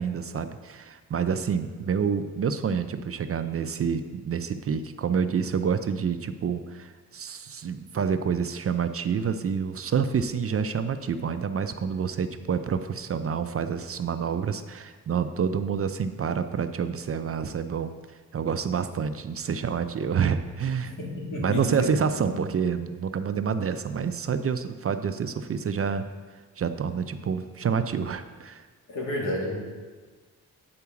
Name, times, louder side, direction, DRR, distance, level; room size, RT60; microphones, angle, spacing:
voice 1, 0.0-17.9 18.3-20.9 21.4-26.1 26.6-28.6, right 6 dB, 45° right, 9 dB, 0.5 m, -28 dB
voice 2, 20.8-21.9 22.2-22.4 28.9-29.6, left 1 dB, 70° left, -2 dB, 2.3 m, -31 dB
9.7 x 4.7 x 6.9 m, 1.4 s
wide cardioid pair, 135°, 33 cm